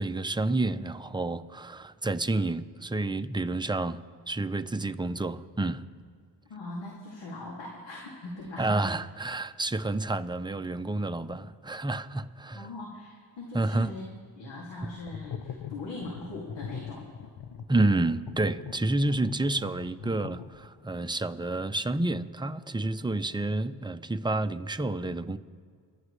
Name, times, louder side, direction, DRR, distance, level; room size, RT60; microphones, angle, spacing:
voice 1, 0.0-4.0 4.3-5.8 8.6-12.7 13.5-13.9 17.7-25.4, right 2 dB, 10° right, 0.6 m, -29 dB
voice 2, 6.5-8.9 12.5-14.1 14.4-17.1, left 2 dB, 85° left, 2.6 m, -40 dB
sound 1, 14.8-20.9, left 7 dB, 60° left, 0.8 m, -42 dB
29.5 x 11.0 x 3.3 m
cardioid pair, 80°, 43 cm